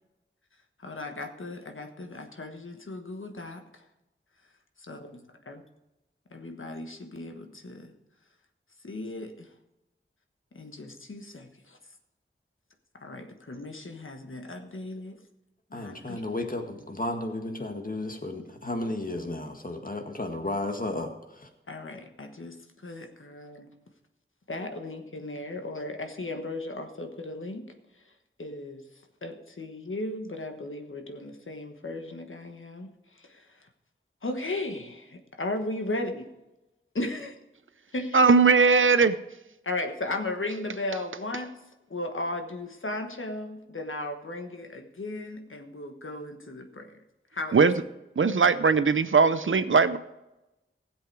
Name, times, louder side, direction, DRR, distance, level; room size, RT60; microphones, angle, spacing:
voice 1, 0.8-3.8 4.9-5.6 6.3-7.9 8.8-9.5 10.5-11.8 13.0-15.2 15.7-16.2 21.7-22.6 22.8-23.7 24.5-27.7 28.4-28.8 29.2-33.7 34.2-36.3 36.9-37.3 37.9-38.2 39.6-41.5 41.9-47.0 47.3-47.6, left 2 dB, 70° left, 1.4 m, -36 dB
voice 2, 15.7-21.5, left 2 dB, 40° left, 1.8 m, -33 dB
voice 3, 38.1-39.2 47.5-47.7 48.2-50.0, right 4 dB, 70° right, 0.6 m, -19 dB
15.5 x 7.9 x 4.7 m
wide cardioid pair, 60°, 21 cm